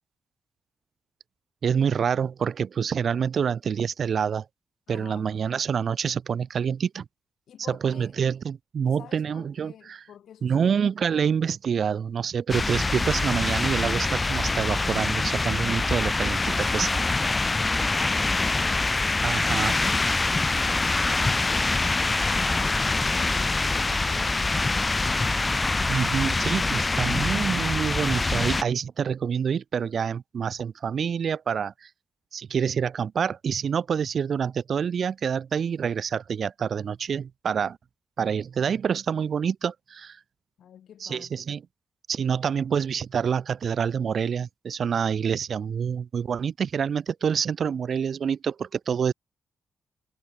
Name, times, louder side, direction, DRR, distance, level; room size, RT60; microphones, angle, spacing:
voice 1, 1.6-4.5 4.9-7.0 7.7-10.0 10.4-17.0 19.2-19.8 25.9-31.9 32.3-37.8 38.2-40.2 41.0-41.6 42.1-49.1, right 7 dB, 60° right, 0.9 m, -27 dB
voice 2, 4.9-5.3 7.5-8.1 8.8-10.9 17.8-21.0 21.4-25.3 40.6-41.5, left 9 dB, 80° left, 3.0 m, -48 dB
sound 1, 12.5-28.6, left 3 dB, 25° left, 0.7 m, -25 dB
cardioid pair, 80°, 0 cm